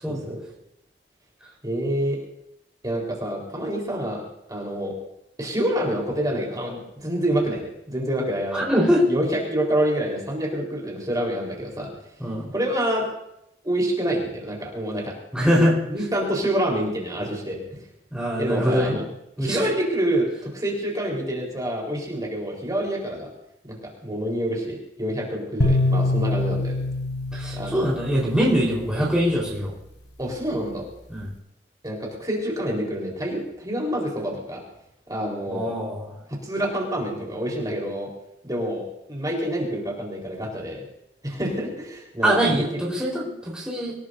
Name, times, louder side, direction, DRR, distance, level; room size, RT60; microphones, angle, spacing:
voice 1, 0.1-0.4 1.6-2.2 2.8-4.2 4.5-4.9 5.4-8.6 9.1-11.9 12.5-13.1 13.6-15.1 15.9-17.8 18.4-19.1 19.4-23.3 23.6-23.8 24.0-26.8 27.5-27.9 30.2-30.8 31.8-34.6 35.1-35.7 36.4-38.1 38.4-40.8 41.2-42.5, right 1 dB, 20° right, -2 dB, 4.1 m, -27 dB
voice 2, 8.5-9.1 12.2-12.5 15.3-15.8 18.1-19.0 19.4-19.7 27.3-29.7 31.1-31.3 35.5-36.2 42.2-43.9, equal, 5° right, -5 dB, 4.1 m, -23 dB
sound 1, 25.6-28.9, left 2 dB, 80° left, 4.6 m, -24 dB
26.0 x 17.5 x 2.7 m, 0.81 s
head